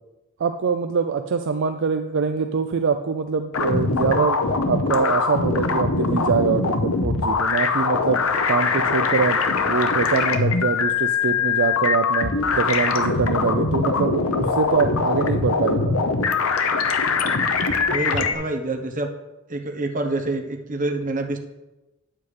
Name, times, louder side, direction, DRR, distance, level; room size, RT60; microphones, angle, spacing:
voice 1, 0.4-4.4 4.7-8.2 8.5-9.4 9.7-16.0, right 5 dB, 60° right, 7 dB, 0.4 m, -24 dB
sound 1, 3.5-18.4, left 4 dB, 75° left, 0.8 m, -22 dB
voice 2, 17.9-19.1 19.5-21.4, right 2 dB, 40° right, 3 dB, 1.0 m, -27 dB
9.3 x 7.4 x 3.3 m, 1.0 s
head